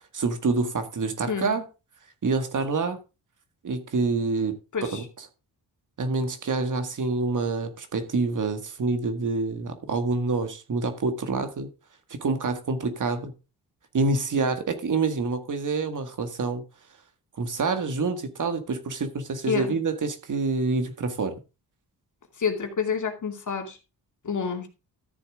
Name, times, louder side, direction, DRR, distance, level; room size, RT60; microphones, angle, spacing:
voice 1, 0.1-1.6 2.2-3.0 3.6-4.5 4.8-5.3 6.0-11.7 12.1-13.3 13.9-16.6 17.4-21.3, right 3 dB, 50° right, 1.9 m, -27 dB
voice 2, 22.4-23.8 24.2-24.7, left 6 dB, 50° left, 2.6 m, -28 dB
13.5 x 7.0 x 3.7 m
cardioid pair, 75°, 39 cm